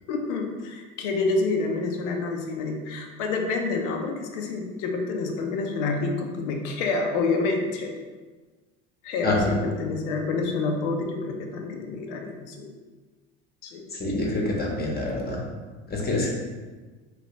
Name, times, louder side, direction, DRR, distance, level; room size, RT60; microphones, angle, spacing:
voice 1, 0.1-7.9 9.0-12.7 13.6-13.8, left 3 dB, 80° left, 3 dB, 0.6 m, -28 dB
voice 2, 9.2-9.6 13.9-15.4 15.9-16.3, left 2 dB, 25° left, -2 dB, 0.9 m, -26 dB
3.1 x 2.9 x 3.0 m, 1.3 s
hypercardioid pair, 80°, 35 cm